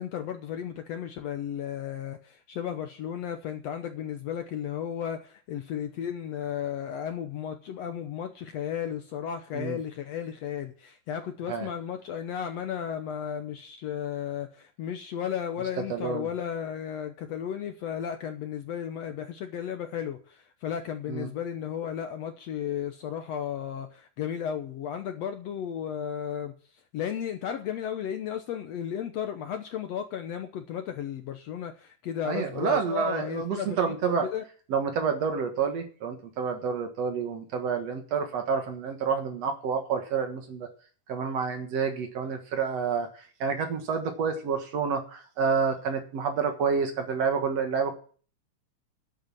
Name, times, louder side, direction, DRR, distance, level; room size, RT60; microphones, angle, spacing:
voice 1, 0.0-26.5 26.9-34.4, left 9 dB, 70° left, 7 dB, 1.7 m, -34 dB
voice 2, 15.9-16.3 21.1-21.3 32.2-34.3 34.7-40.7 41.1-47.9, right 6 dB, 55° right, 6 dB, 2.4 m, -29 dB
10.5 x 8.0 x 7.1 m, 0.42 s
omnidirectional pair, 3.8 m